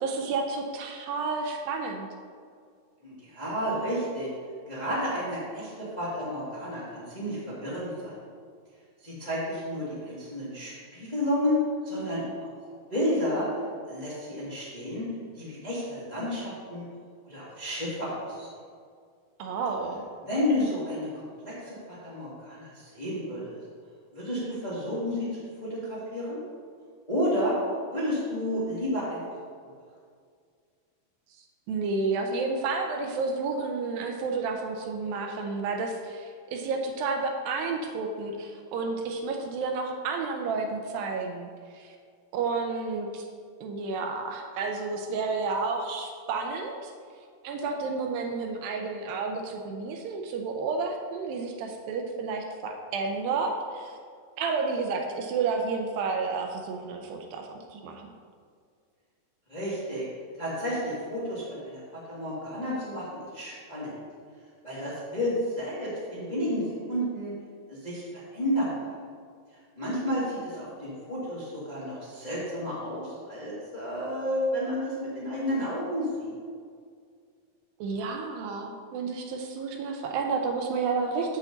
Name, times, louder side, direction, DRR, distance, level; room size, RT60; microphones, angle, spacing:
voice 1, 0.0-2.1 19.4-20.0 31.7-42.0 42.3-43.2 43.6-46.9 47.4-54.0 54.4-58.1 77.8-81.4, right 4 dB, 80° right, 3 dB, 2.3 m, -31 dB
voice 2, 3.0-4.3 4.7-8.1 9.0-12.5 12.9-13.5 13.9-16.9 17.3-18.5 20.2-23.6 24.1-26.4 27.1-27.6 27.9-29.2 59.5-60.0 60.4-63.0 63.3-63.9 64.6-67.3 67.7-68.1 68.3-68.8 69.8-76.3, equal, 20° left, -9 dB, 1.0 m, -31 dB
8.3 x 7.1 x 3.9 m, 2.1 s
omnidirectional pair, 4.4 m